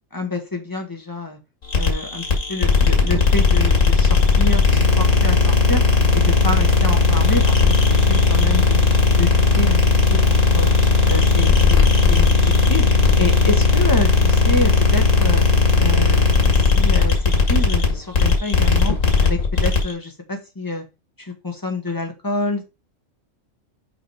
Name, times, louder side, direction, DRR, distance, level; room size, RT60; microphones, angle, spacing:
voice 1, 0.1-1.4 1.7-5.8 6.1-7.6 7.9-8.8 9.1-9.8 10.1-10.7 11.1-12.3 12.7-12.9 13.2-15.4 15.8-17.2 17.5-19.0 19.2-20.8 21.2-22.6, left 2 dB, 15° left, 3 dB, 1.5 m, -27 dB
sound 1, 1.7-19.9, left 4 dB, 75° left, 2.2 m, -16 dB
6.0 x 5.0 x 4.9 m, 0.27 s
omnidirectional pair, 1.3 m